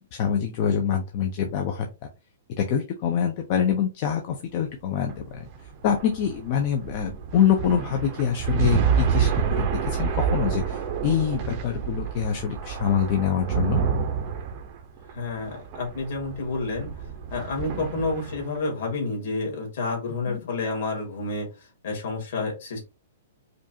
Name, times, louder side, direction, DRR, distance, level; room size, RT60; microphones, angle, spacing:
voice 1, 0.1-1.9 2.6-5.4 5.8-13.8 20.3-20.4, left 8 dB, 30° left, 4 dB, 0.5 m, -25 dB
sound 1, 5.0-18.6, right 7 dB, 25° right, 0.6 m, -28 dB
voice 2, 15.1-16.9 17.3-22.8, left 3 dB, 50° left, -1 dB, 2.1 m, -30 dB
5.0 x 2.4 x 2.7 m, 0.28 s
hypercardioid pair, 180°, 0 cm